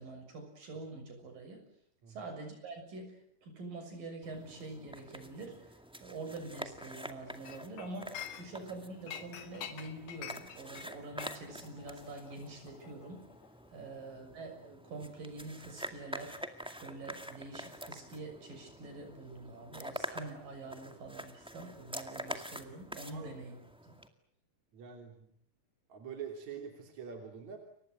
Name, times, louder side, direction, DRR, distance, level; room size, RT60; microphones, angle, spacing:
voice 1, 0.0-1.6 2.1-5.7 6.0-13.2 13.7-23.6 23.8-24.0, right 2 dB, 80° right, 5 dB, 8.2 m, -46 dB
sound 1, 4.2-24.1, equal, 5° right, 1.1 m, -47 dB
Chink clink, 7.5-8.7 9.1-13.7 14.0-14.2, left 9 dB, 70° left, 3.3 m, -47 dB
voice 2, 23.1-23.6 24.7-25.3 25.9-27.6, right 7 dB, 55° right, 4 dB, 4.4 m, -45 dB
30.0 x 24.0 x 7.9 m, 0.66 s
omnidirectional pair, 3.8 m